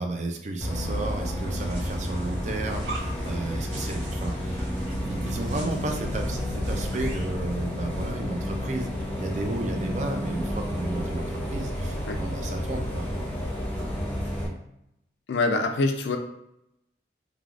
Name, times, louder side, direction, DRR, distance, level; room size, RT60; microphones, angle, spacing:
voice 1, 0.0-4.7 5.0-8.9 9.2-13.1 13.5-14.1, right 2 dB, 40° right, 4 dB, 0.4 m, -33 dB
Bus, 0.6-14.5, equal, 10° left, 0.6 m, -31 dB
sound 1, 1.5-7.3, right 1 dB, 75° right, 1.1 m, -41 dB
voice 2, 15.3-16.2, left 3 dB, 80° left, 6 dB, 0.4 m, -25 dB
3.3 x 2.3 x 2.4 m, 0.81 s
head